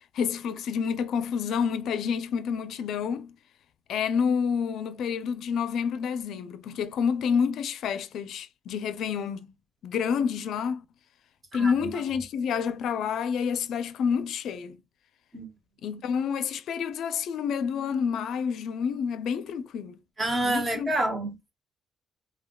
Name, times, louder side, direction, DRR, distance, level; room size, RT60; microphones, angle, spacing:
voice 1, 0.0-3.4 3.9-9.5 9.8-10.8 11.5-14.8 15.8-20.0 20.4-20.9, left 6 dB, 75° left, 0.4 m, -28 dB
voice 2, 20.2-21.5, right 1 dB, 30° right, 1.1 m, -28 dB
3.4 x 2.3 x 2.2 m
cardioid pair, 90°, 0 cm